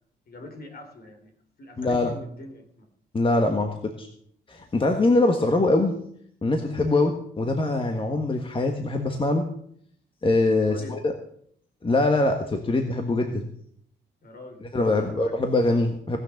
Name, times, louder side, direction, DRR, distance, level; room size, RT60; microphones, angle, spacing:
voice 1, 0.3-1.3 1.6-2.9 6.9-7.1 10.6-11.0 14.2-15.3, left 2 dB, 50° left, 5 dB, 3.7 m, -43 dB
voice 2, 1.8-2.1 3.1-4.1 4.5-6.0 6.4-9.5 10.2-11.1 11.8-13.5 14.6-16.2, left 2 dB, 25° left, 4 dB, 1.6 m, -23 dB
18.0 x 6.6 x 7.2 m, 0.65 s
cardioid pair, 90°, 20 cm